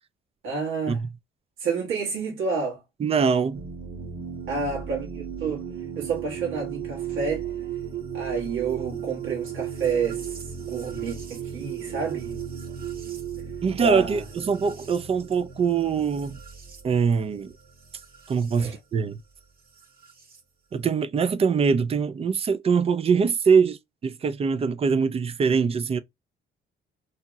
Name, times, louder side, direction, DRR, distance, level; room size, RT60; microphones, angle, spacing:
voice 1, 0.4-1.0 1.6-2.8 4.5-5.6 6.0-7.5 8.1-12.4 12.9-13.0 13.7-14.2 18.5-18.8, right 5 dB, 80° right, 1.2 m, -30 dB
voice 2, 3.0-3.6 13.6-16.4 16.8-17.5 18.3-19.2 20.7-26.0, right 5 dB, 30° right, 0.4 m, -23 dB
sound 1, 3.5-18.6 19.8-20.4, right 8 dB, 50° right, 0.8 m, -36 dB
2.8 x 2.8 x 2.2 m
cardioid pair, 90°, 20 cm